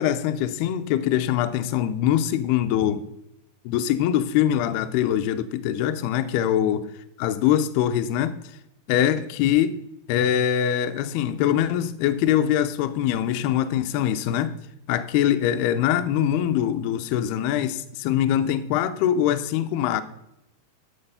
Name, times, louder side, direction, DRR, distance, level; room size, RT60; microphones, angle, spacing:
voice 1, 0.0-3.0 3.7-6.9 7.2-8.4 8.9-9.8 10.1-14.6 14.9-20.0, left 10 dB, 80° left, 2.4 m, -23 dB
12.0 x 6.5 x 5.6 m
omnidirectional pair, 5.0 m